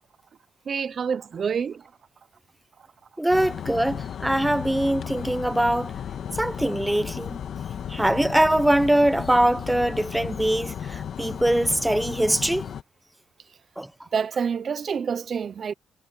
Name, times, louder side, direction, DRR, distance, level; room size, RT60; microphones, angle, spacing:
voice 1, 0.7-1.8 14.1-15.7, right 6 dB, 50° right, 0.9 m, -27 dB
voice 2, 3.2-5.9 6.4-7.4 7.9-12.6 13.8-13.9, right 1 dB, 5° right, 1.1 m, -22 dB
sound 1, 3.3-12.8, left 8 dB, 60° left, 1.7 m, -34 dB
cardioid pair, 90°, 0 cm